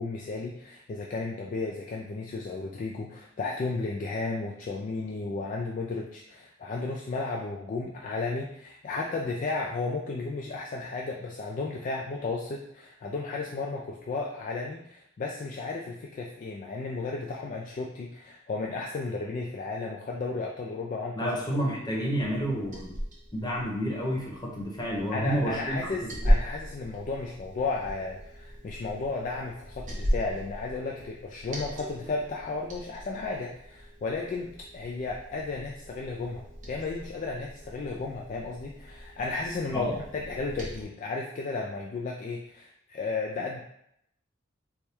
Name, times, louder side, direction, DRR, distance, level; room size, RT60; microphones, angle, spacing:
voice 1, 0.0-21.7 25.1-43.6, left 3 dB, 40° left, -1 dB, 0.3 m, -34 dB
voice 2, 21.1-22.9 23.3-25.9 39.7-40.0, equal, 20° left, -3 dB, 0.9 m, -30 dB
Liquid, 22.2-40.8, equal, 40° right, 0.9 m, -36 dB
3.4 x 2.2 x 4.3 m, 0.77 s
head